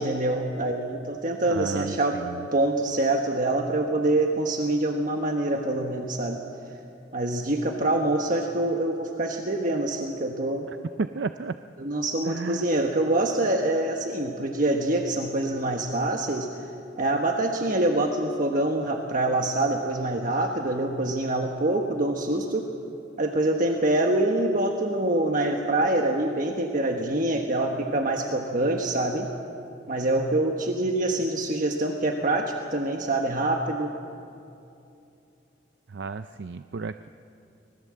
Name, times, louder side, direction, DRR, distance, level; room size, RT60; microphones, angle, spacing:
voice 1, 0.0-2.2 2.5-6.4 7.1-10.7 11.8-16.5 17.0-22.7 23.2-29.3 29.9-33.9, right 2 dB, 45° right, 2 dB, 1.3 m, -25 dB
voice 2, 1.5-2.5 10.7-11.6 12.2-12.7 35.9-37.1, right 4 dB, 65° right, 10 dB, 0.5 m, -33 dB
25.5 x 19.5 x 7.6 m, 2.6 s
head